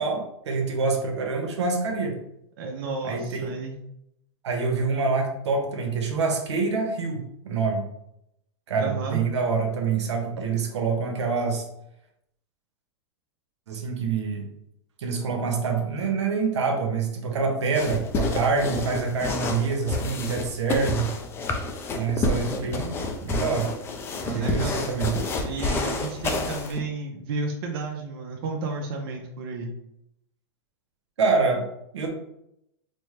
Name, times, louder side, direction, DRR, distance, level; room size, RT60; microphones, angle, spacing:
voice 1, 0.0-2.2 3.0-3.5 4.4-7.8 8.7-11.7 13.7-14.4 15.0-21.1 21.9-22.9 23.2-23.7 24.3-25.2 31.2-31.6 31.9-32.1, right 4 dB, 90° right, 3 dB, 0.9 m, -26 dB
voice 2, 2.6-3.7 8.8-9.2 24.3-24.9 25.4-29.7, right 3 dB, 55° right, 1 dB, 0.6 m, -32 dB
sound 1, 17.7-26.8, left 3 dB, 15° left, 0.3 m, -29 dB
4.3 x 2.1 x 3.2 m, 0.80 s
hypercardioid pair, 140°, 14 cm